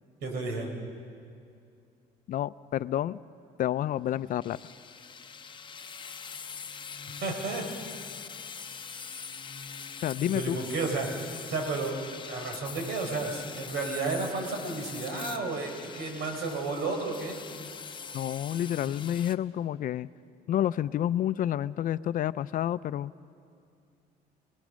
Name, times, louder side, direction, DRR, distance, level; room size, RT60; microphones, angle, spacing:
voice 1, 0.2-0.7 7.2-7.7 10.3-11.1 11.4-12.0 12.3-17.4, right 3 dB, 80° right, 3 dB, 4.3 m, -32 dB
voice 2, 2.3-3.2 3.6-4.6 10.0-10.6 18.1-20.1 20.5-23.1, left 11 dB, 55° left, 16 dB, 0.5 m, -29 dB
sound 1, 4.4-19.3, left 6 dB, 30° left, 0.8 m, -43 dB
28.0 x 20.0 x 6.3 m, 2.4 s
cardioid pair, 110°, 17 cm